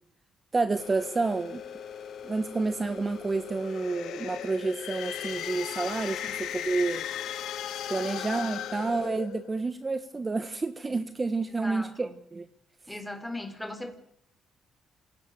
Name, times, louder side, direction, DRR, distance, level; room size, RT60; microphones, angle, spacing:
voice 1, 0.5-1.6 2.2-7.0 7.9-12.5, right 3 dB, 25° right, 1.4 m, -29 dB
sound 1, 0.7-9.1, left 7 dB, 60° left, 5.0 m, -42 dB
sound 2, 3.5-9.6, left 11 dB, 85° left, 2.2 m, -37 dB
voice 2, 11.6-12.1 12.9-14.0, left 1 dB, 5° left, 3.9 m, -39 dB
27.5 x 17.5 x 6.8 m
cardioid pair, 90°, 0 cm